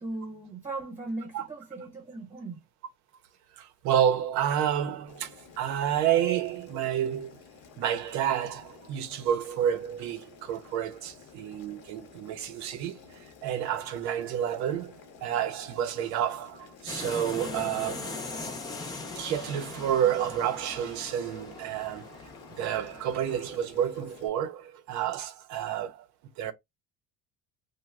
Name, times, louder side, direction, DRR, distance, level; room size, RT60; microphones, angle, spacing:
voice 1, 0.0-2.6, right 2 dB, 20° right, 1.0 m, -38 dB
voice 2, 3.6-7.4 7.8-18.2 19.2-22.3 22.6-26.1 26.4-26.5, right 10 dB, 55° right, 0.6 m, -30 dB
Boiling, 5.1-24.3, left 6 dB, 45° left, 0.7 m, -52 dB
sound 1, 16.9-23.5, left 3 dB, 15° left, 0.3 m, -40 dB
3.0 x 2.1 x 3.5 m
cardioid pair, 175°, 33 cm